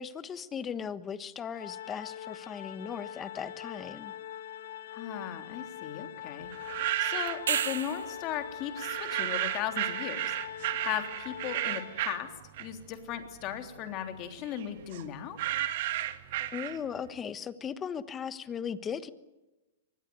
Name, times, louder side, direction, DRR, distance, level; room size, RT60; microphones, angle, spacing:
voice 1, 0.0-4.1 16.5-19.1, left 7 dB, 15° left, 14 dB, 1.2 m, -37 dB
Organ, 1.5-12.4, left 10 dB, 70° left, 1.9 m, -43 dB
voice 2, 4.9-6.5 7.0-10.4 10.8-12.3 12.6-15.4, left 10 dB, 30° left, 6 dB, 3.4 m, -37 dB
sound 1, 6.5-7.8 8.8-13.0 13.4-17.1, right 14 dB, 55° right, 1.9 m, -33 dB
sound 2, 7.3-8.3 12.9-13.0, right 9 dB, 85° right, 1.7 m, -31 dB
24.0 x 20.5 x 9.6 m, 1.1 s
hypercardioid pair, 150°, 0 cm